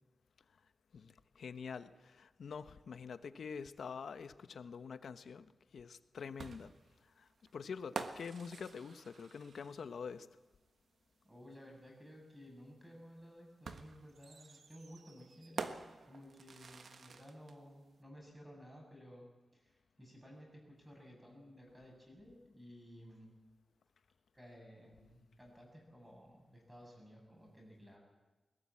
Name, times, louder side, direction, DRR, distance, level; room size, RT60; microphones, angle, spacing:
voice 1, 0.9-5.5 5.7-6.7 7.2-10.3, left 6 dB, 85° left, 12 dB, 1.0 m, -46 dB
sound 1, 6.4-10.0 11.5-11.6 13.6-17.6, right 4 dB, 65° right, 1.4 m, -47 dB
voice 2, 11.2-23.4 24.3-28.0, equal, 10° right, 1 dB, 7.3 m, -56 dB
21.5 x 19.0 x 8.5 m, 1.2 s
wide cardioid pair, 140°, 0 cm